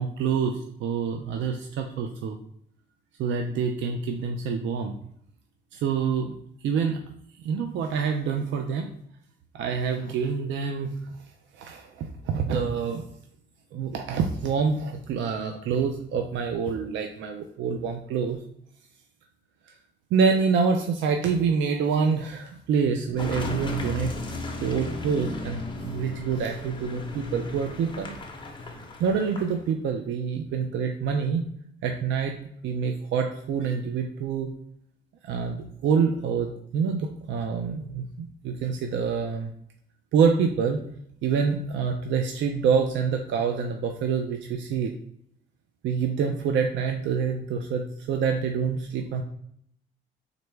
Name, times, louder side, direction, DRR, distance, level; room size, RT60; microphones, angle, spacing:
voice 1, 0.0-2.4 3.2-5.0 5.7-6.3 6.6-7.0 7.4-8.9 9.5-11.2 11.5-13.1 13.7-18.4 19.6-19.8 20.1-28.2 28.8-31.5 31.8-34.6 35.2-39.5 40.1-40.8 41.2-44.9 45.8-49.2, right 6 dB, 70° right, 4 dB, 0.4 m, -26 dB
Car passing by / Engine, 23.2-29.7, left 2 dB, 25° left, 0.7 m, -35 dB
3.8 x 2.2 x 3.1 m, 0.69 s
cardioid pair, 90°, 20 cm